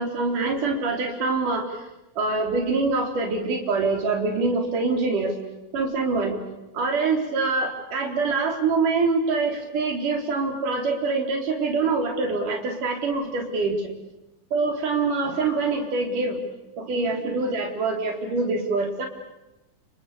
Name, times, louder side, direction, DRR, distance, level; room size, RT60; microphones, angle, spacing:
voice 1, 0.0-1.8 2.2-5.4 5.7-6.4 6.7-13.9 14.5-16.4 16.8-19.1, right 3 dB, 60° right, 2 dB, 5.5 m, -25 dB
30.0 x 28.0 x 6.9 m, 0.96 s
omnidirectional pair, 4.3 m